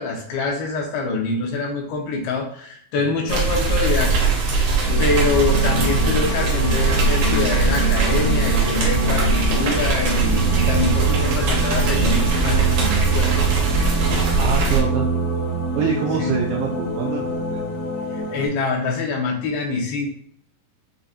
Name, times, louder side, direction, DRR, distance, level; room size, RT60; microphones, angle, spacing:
voice 1, 0.0-4.7 5.0-13.3 16.2-16.3 18.1-20.1, left 3 dB, 75° left, 0 dB, 2.6 m, -25 dB
sound 1, 3.3-14.8, right 4 dB, 70° right, 1.8 m, -20 dB
sound 2, 4.8-18.5, right 2 dB, 60° left, 2.3 m, -25 dB
voice 2, 14.2-15.1 15.7-17.6, right 6 dB, 85° right, -1 dB, 2.1 m, -25 dB
7.3 x 2.7 x 2.4 m, 0.62 s
omnidirectional pair, 4.8 m